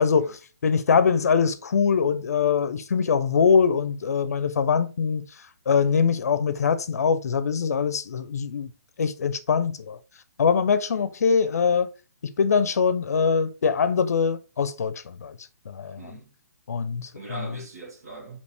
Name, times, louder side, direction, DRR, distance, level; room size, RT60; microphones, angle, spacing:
voice 1, 0.0-5.3 5.7-8.7 9.0-10.0 10.4-11.9 12.2-15.4 15.7-16.0 16.7-17.5, left 6 dB, 65° left, 0.5 m, -23 dB
voice 2, 16.0-16.3 17.1-18.4, right 3 dB, 70° right, 1.5 m, -41 dB
3.3 x 2.9 x 4.3 m
hypercardioid pair, 175°, 9 cm